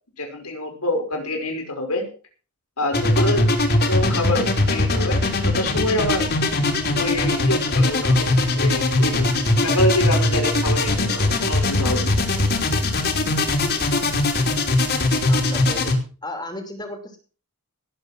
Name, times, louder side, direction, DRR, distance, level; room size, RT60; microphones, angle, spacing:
voice 1, 0.2-2.0 2.8-3.5 3.9-6.3 6.9-9.3 9.6-12.1, left 1 dB, 80° left, 3 dB, 5.4 m, -26 dB
sound 1, 2.9-15.9, left 2 dB, 50° left, 3.2 m, -20 dB
voice 2, 15.3-15.9 16.2-17.2, left 2 dB, 20° left, 5 dB, 2.8 m, -34 dB
18.5 x 8.1 x 6.3 m, 0.39 s
head